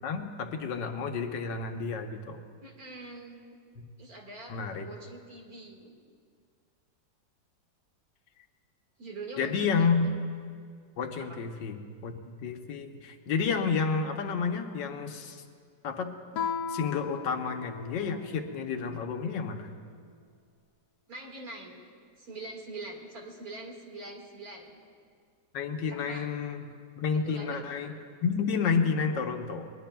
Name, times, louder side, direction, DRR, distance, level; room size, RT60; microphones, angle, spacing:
voice 1, 0.0-2.4 3.8-3.9 4.5-4.9 9.4-10.1 11.0-15.4 15.8-16.1 16.7-19.7 25.5-26.6 27.0-27.9 28.2-29.7, left 5 dB, 90° left, 5 dB, 1.6 m, -30 dB
voice 2, 2.6-3.4 4.0-4.6 4.8-5.9 9.0-9.9 11.3-11.4 21.1-21.8 22.2-24.8 25.9-26.3 27.1-27.6, right 3 dB, 55° right, 0 dB, 2.4 m, -43 dB
Guitar, 16.3-18.8, left 6 dB, 60° left, 1.0 m, -37 dB
21.5 x 20.5 x 2.3 m, 2.1 s
omnidirectional pair, 1.9 m